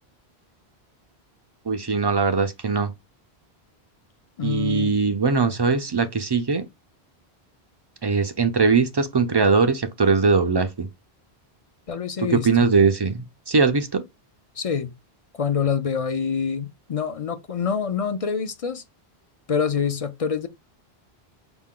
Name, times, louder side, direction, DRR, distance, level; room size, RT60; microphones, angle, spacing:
voice 1, 1.7-2.9 4.4-6.6 8.0-10.9 12.2-14.0, right 4 dB, 45° right, 0.3 m, -21 dB
voice 2, 4.4-5.0 11.9-12.5 14.6-14.9 15.4-18.8 19.5-20.5, left 6 dB, 45° left, 0.4 m, -26 dB
5.9 x 2.2 x 3.6 m
omnidirectional pair, 1.1 m